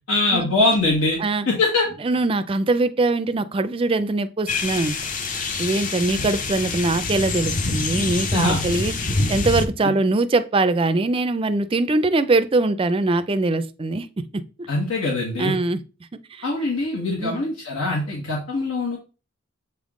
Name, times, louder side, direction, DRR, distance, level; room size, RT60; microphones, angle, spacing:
voice 1, 0.1-1.2 1.5-1.9 8.3-8.7 9.8-9.9 14.7-15.6 16.4-19.0, left 2 dB, 90° left, 1.6 m, -22 dB
voice 2, 2.0-5.0 5.6-8.9 9.3-14.7 15.4-15.8 16.3-16.4 17.2-17.4, right 2 dB, 25° right, 0.4 m, -22 dB
sound 1, 4.5-9.7, left 3 dB, 40° left, 0.6 m, -26 dB
7.5 x 3.6 x 3.7 m
head